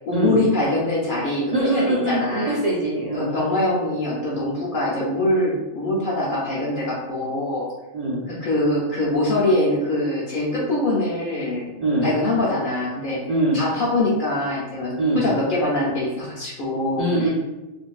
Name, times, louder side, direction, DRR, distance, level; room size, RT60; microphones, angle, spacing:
voice 1, 0.1-2.6 3.1-7.7 8.3-11.7 12.0-13.2 13.5-17.3, left 1 dB, 55° left, -5 dB, 0.7 m, -23 dB
voice 2, 1.5-3.4 7.9-8.2 11.8-12.1 13.3-13.6 14.9-15.3 17.0-17.3, right 2 dB, 85° right, -7 dB, 0.3 m, -22 dB
2.5 x 2.2 x 2.3 m, 1.1 s
omnidirectional pair, 1.3 m